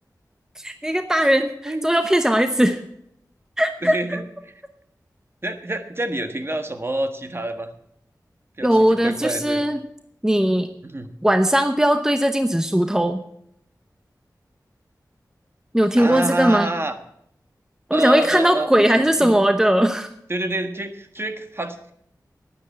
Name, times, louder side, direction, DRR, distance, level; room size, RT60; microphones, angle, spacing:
voice 1, 0.6-2.8 3.6-4.2 8.6-9.8 10.2-10.7 11.2-13.2 15.7-16.7 17.9-20.1, right 1 dB, 10° right, 8 dB, 0.9 m, -19 dB
voice 2, 3.8-4.5 5.4-7.7 8.6-9.6 10.8-11.1 16.0-17.0 17.9-19.5 20.3-21.9, right 1 dB, 35° right, 7 dB, 1.4 m, -27 dB
10.0 x 9.8 x 8.4 m, 0.74 s
wide cardioid pair, 50°, 7 cm